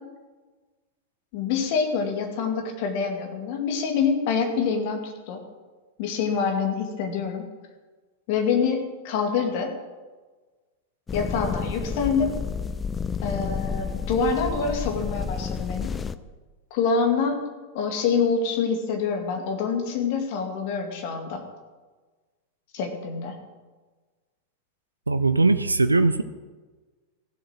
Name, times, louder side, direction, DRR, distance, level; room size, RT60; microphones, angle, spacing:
voice 1, 1.3-5.4 6.0-7.4 8.3-9.7 11.1-12.3 13.2-15.9 16.7-17.4 17.7-21.4 22.7-23.3, left 5 dB, 45° left, 3 dB, 2.3 m, -26 dB
sound 1, 11.1-16.2, left 6 dB, 15° left, 0.5 m, -30 dB
voice 2, 25.1-26.2, right 3 dB, 80° right, 12 dB, 0.5 m, -20 dB
15.5 x 7.6 x 6.3 m, 1.3 s
figure-of-eight pair, 90°, 0 cm